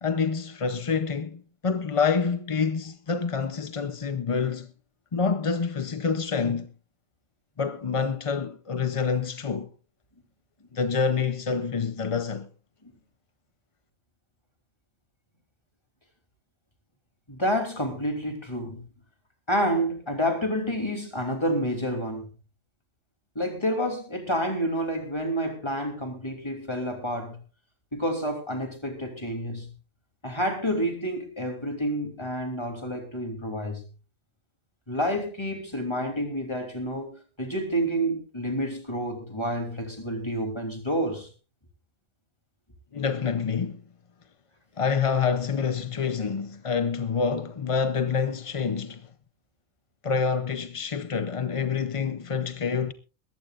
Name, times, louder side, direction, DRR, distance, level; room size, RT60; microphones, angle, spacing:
voice 1, 0.0-4.7 5.1-6.7 7.6-9.7 10.7-12.5 42.9-43.8 44.8-49.1 50.0-52.9, left 5 dB, 40° left, 0.5 m, -27 dB
voice 2, 17.3-18.8 19.5-22.3 23.3-27.4 27.9-29.7 30.2-33.8 34.9-41.3, equal, 20° left, 3.0 m, -29 dB
21.5 x 14.5 x 2.5 m
omnidirectional pair, 1.4 m